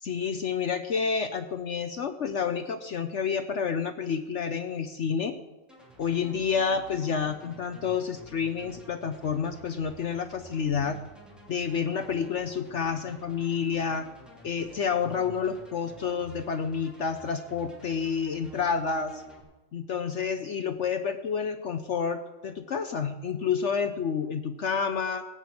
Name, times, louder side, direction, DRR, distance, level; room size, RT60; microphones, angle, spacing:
voice 1, 0.0-5.4 6.0-11.0 11.5-14.1 14.4-19.2 19.7-25.3, left 6 dB, 60° left, 9 dB, 0.7 m, -29 dB
sound 1, 5.7-19.4, equal, ahead, 2.7 m, -50 dB
17.5 x 6.1 x 8.4 m, 1.1 s
omnidirectional pair, 1.9 m